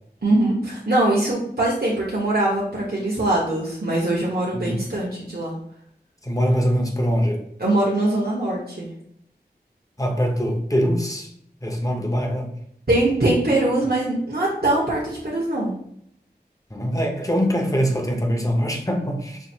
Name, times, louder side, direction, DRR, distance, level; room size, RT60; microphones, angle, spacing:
voice 1, 0.2-5.5 7.6-8.9 12.9-15.7, right 1 dB, 65° right, -6 dB, 1.1 m, -22 dB
voice 2, 6.2-7.4 10.0-11.3 11.6-12.5 16.7-19.4, equal, 20° left, 2 dB, 0.8 m, -23 dB
5.7 x 2.5 x 2.8 m, 0.69 s
wide cardioid pair, 40°, 17 cm